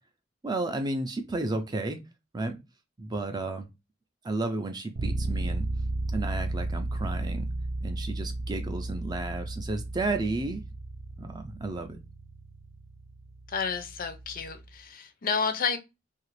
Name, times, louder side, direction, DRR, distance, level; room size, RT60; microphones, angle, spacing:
voice 1, 0.4-2.0 2.3-2.6 3.0-3.7 4.2-5.7 6.1-7.5 7.8-10.6 11.2-12.0, right 2 dB, 20° right, 0.4 m, -32 dB
sound 1, 5.0-14.7, right 2 dB, 85° right, 0.6 m, -34 dB
voice 2, 13.5-15.8, left 5 dB, 45° left, 0.4 m, -30 dB
2.8 x 2.5 x 3.1 m
head